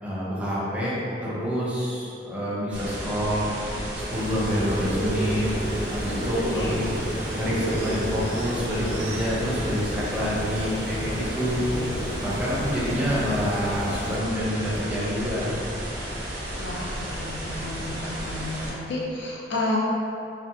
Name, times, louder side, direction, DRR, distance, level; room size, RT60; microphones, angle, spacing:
voice 1, 0.0-3.5 4.1-5.5 5.9-6.9 7.3-11.6 12.2-15.5, equal, 5° right, -8 dB, 0.5 m, -27 dB
sound 1, 2.7-18.7, equal, 85° right, 0.8 m, -33 dB
sound 2, 4.1-14.2, right 1 dB, 60° right, 0.5 m, -32 dB
voice 2, 6.5-6.9 11.7-11.9 12.9-13.0 16.6-19.8, left 1 dB, 90° left, -4 dB, 0.5 m, -32 dB
2.7 x 2.1 x 2.4 m, 2.6 s
head